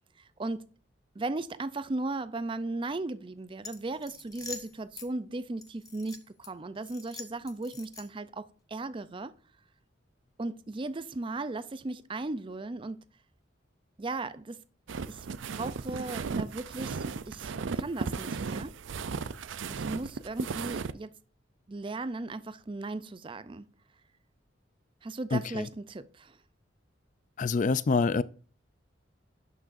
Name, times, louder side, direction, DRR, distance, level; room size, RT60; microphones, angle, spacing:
voice 1, 0.2-0.7 1.2-9.3 10.4-13.1 14.0-14.6 15.1-15.3 15.6-18.8 19.7-21.2 21.7-23.7 25.0-26.4, right 2 dB, 25° right, 0.4 m, -37 dB
sound 1, 3.6-5.1 5.6-6.5 6.8-8.3, left 5 dB, 20° left, 0.8 m, -45 dB
sound 2, 14.9-20.9, right 5 dB, 90° right, 0.5 m, -35 dB
voice 2, 25.3-25.7 27.4-28.2, left 4 dB, 40° left, 0.4 m, -26 dB
11.0 x 6.0 x 2.6 m
head